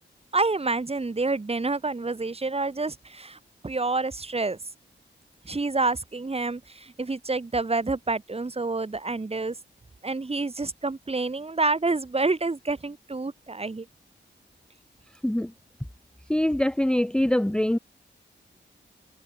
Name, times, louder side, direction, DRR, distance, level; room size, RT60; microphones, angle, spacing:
voice 1, 0.3-3.4 3.6-4.6 5.5-9.5 10.0-13.9, right 3 dB, 30° right, 5.2 m, -28 dB
voice 2, 16.3-17.8, left 1 dB, 5° left, 1.0 m, -23 dB
wide cardioid pair, 120°, 20 cm